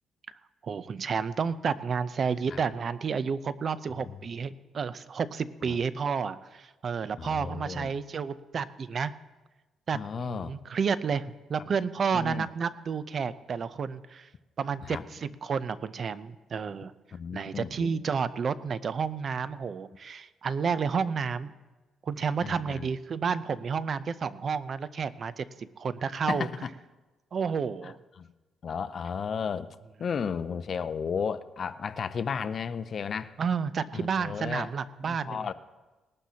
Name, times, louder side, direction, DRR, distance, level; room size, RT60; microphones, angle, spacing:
voice 1, 0.6-9.1 9.9-14.3 14.6-16.9 17.3-21.5 22.0-26.5 27.3-28.0 33.4-35.5, right 6 dB, 50° right, 15 dB, 0.6 m, -31 dB
voice 2, 7.2-7.9 9.9-10.6 12.1-12.5 14.9-15.0 17.1-17.9 22.4-22.9 26.3-26.7 27.8-27.9 28.2-28.3 28.6-33.3 33.9-34.7 35.1-35.5, left 6 dB, 50° left, 14 dB, 0.5 m, -34 dB
19.5 x 12.0 x 2.9 m, 1.2 s
cardioid pair, 90°, 0 cm